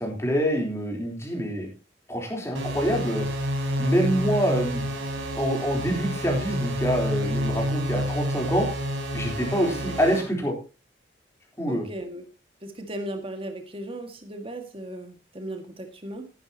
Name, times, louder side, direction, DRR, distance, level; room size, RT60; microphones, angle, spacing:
voice 1, 0.0-1.7 2.1-3.3 3.8-4.9 5.4-8.7 9.1-10.5 11.6-11.9, equal, 15° left, 0 dB, 3.8 m, -26 dB
sound 1, 2.5-10.2, equal, 85° right, 3.9 m, -29 dB
voice 2, 11.7-12.2 12.6-16.3, right 1 dB, 30° right, 5 dB, 2.0 m, -36 dB
14.0 x 11.5 x 3.0 m, 0.31 s
head